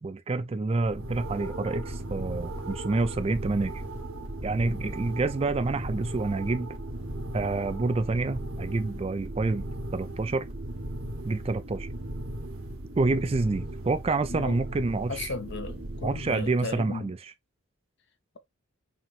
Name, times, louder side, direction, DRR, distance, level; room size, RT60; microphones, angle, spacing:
voice 1, 0.0-3.8 4.4-6.7 7.3-9.6 9.9-10.5 11.2-11.9 13.0-15.3 16.0-17.2, right 3 dB, 30° right, 0.3 m, -28 dB
sound 1, 0.8-16.8, right 1 dB, 75° right, 1.3 m, -37 dB
voice 2, 14.3-14.6 15.1-17.1, left 3 dB, 55° left, 0.8 m, -35 dB
5.7 x 3.0 x 2.4 m
head